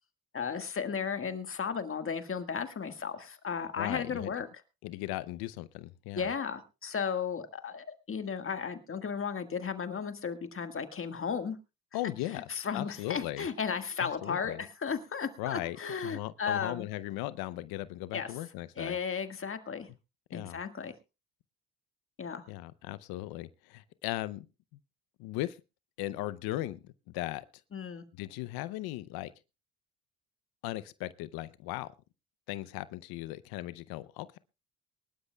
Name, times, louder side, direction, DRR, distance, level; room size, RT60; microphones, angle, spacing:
voice 1, 0.3-4.5 6.2-11.6 12.3-16.9 18.1-18.3 18.8-19.9 20.3-20.9 22.2-22.4 27.7-28.0, left 6 dB, 35° left, 1.6 m, -35 dB
voice 2, 3.8-4.3 4.8-6.3 11.9-13.5 14.0-14.6 15.4-15.8 16.0-19.0 20.3-20.6 22.5-24.5 25.2-25.6 26.0-27.4 28.1-29.3 30.6-31.9 32.5-34.4, left 16 dB, 90° left, 0.7 m, -37 dB
23.5 x 12.0 x 2.3 m
cardioid pair, 85°, 36 cm